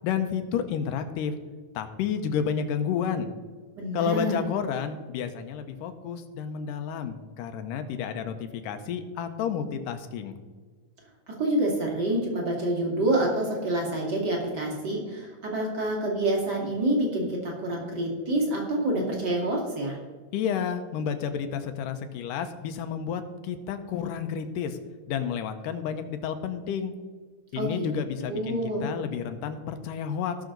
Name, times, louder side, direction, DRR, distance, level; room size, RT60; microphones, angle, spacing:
voice 1, 0.0-1.3 1.8-3.3 3.9-10.4 20.3-24.8 25.1-26.9 27.5-30.4, left 7 dB, 85° left, 8 dB, 2.4 m, -30 dB
voice 2, 3.7-4.4 11.3-20.0 27.6-27.9 28.3-28.9, right 1 dB, 35° right, -1 dB, 2.4 m, -27 dB
17.0 x 6.4 x 3.9 m, 1.4 s
omnidirectional pair, 3.8 m